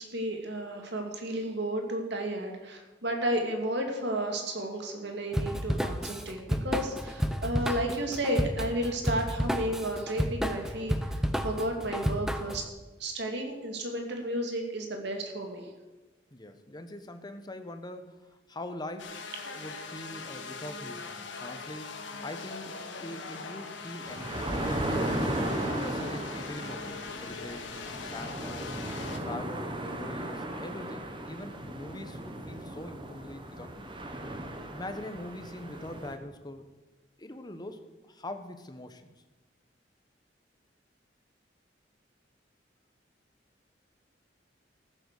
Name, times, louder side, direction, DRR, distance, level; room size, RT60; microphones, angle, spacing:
voice 1, 0.0-12.6 13.0-15.7 19.5-19.6, right 1 dB, 65° right, 3 dB, 2.3 m, -33 dB
Drum kit / Drum, 5.3-12.6, equal, 5° right, 0.8 m, -31 dB
voice 2, 16.3-19.2 19.5-21.9 22.2-22.7 23.0-25.3 25.8-34.0 34.7-36.7 37.2-39.1, left 1 dB, 25° left, 8 dB, 1.0 m, -43 dB
sound 1, 19.0-29.2, left 4 dB, 80° left, 1.5 m, -41 dB
sound 2, 24.1-36.2, right 1 dB, 25° right, 1.3 m, -36 dB
14.5 x 7.9 x 6.6 m, 1.2 s
head